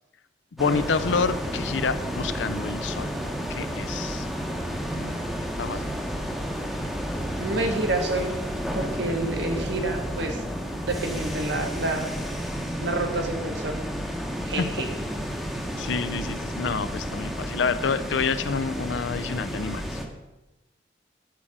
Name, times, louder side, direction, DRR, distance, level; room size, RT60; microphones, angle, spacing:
voice 1, 0.5-3.1 3.5-4.3 5.6-5.9 14.6-14.7 15.8-20.0, left 5 dB, 80° left, 13 dB, 0.5 m, -28 dB
sound 1, 0.6-20.1, equal, ahead, 0.8 m, -31 dB
voice 2, 7.4-8.3 8.7-10.4 10.7-12.1 12.8-13.7 14.5-14.9, right 2 dB, 65° right, 3 dB, 1.3 m, -28 dB
7.5 x 4.9 x 7.1 m, 1.0 s
head